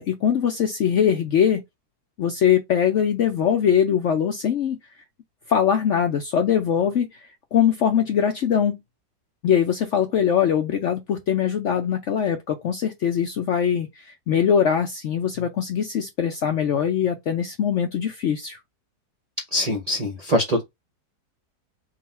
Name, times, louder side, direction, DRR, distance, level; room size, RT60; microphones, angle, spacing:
voice 1, 0.0-1.6 2.2-4.8 5.5-7.2 7.5-8.8 9.4-18.6, left 8 dB, 65° left, 0.7 m, -22 dB
voice 2, 19.5-20.6, left 1 dB, 35° right, 0.6 m, -23 dB
3.9 x 2.4 x 4.1 m
omnidirectional pair, 1.8 m